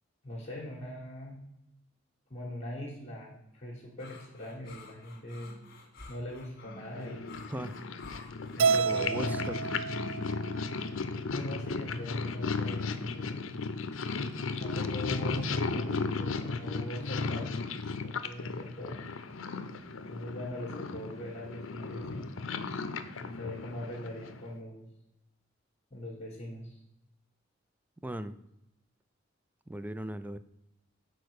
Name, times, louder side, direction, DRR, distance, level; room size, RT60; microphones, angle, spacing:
voice 1, 0.2-1.4 2.3-5.5 6.1-7.4 8.5-9.5 11.3-13.5 14.6-19.1 20.1-22.3 22.8-22.9 23.2-24.8 25.9-26.8, left 1 dB, 35° left, -5 dB, 1.7 m, -41 dB
sound 1, 4.0-9.0, left 3 dB, 50° left, 1.7 m, -51 dB
Purr, 6.8-24.5, left 4 dB, 80° left, 0.6 m, -35 dB
Keyboard (musical), 8.6-10.9, right 5 dB, 75° right, 0.4 m, -30 dB
voice 2, 8.8-9.6 28.0-28.4 29.7-30.4, right 1 dB, 10° right, 12 dB, 0.3 m, -38 dB
6.5 x 4.5 x 6.5 m, 0.85 s
head